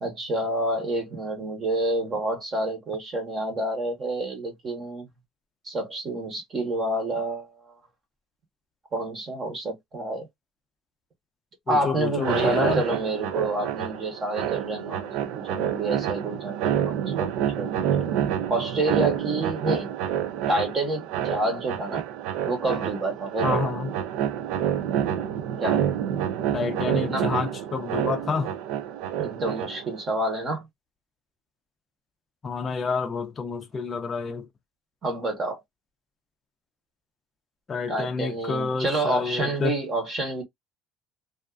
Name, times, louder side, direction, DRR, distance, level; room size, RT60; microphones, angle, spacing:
voice 1, 0.0-5.0 5.6-7.7 8.9-10.3 11.7-18.1 18.5-19.9 20.5-22.0 22.5-23.7 25.6-25.9 26.9-27.3 29.2-30.6 35.0-35.6 37.9-40.4, right 2 dB, 30° right, 1.0 m, -28 dB
voice 2, 11.7-12.8 23.4-23.9 26.5-28.5 32.4-34.5 37.7-39.7, left 5 dB, 25° left, 0.4 m, -28 dB
sound 1, 12.1-30.0, right 9 dB, 75° right, 0.4 m, -28 dB
2.4 x 2.4 x 2.3 m
cardioid pair, 145°, 0 cm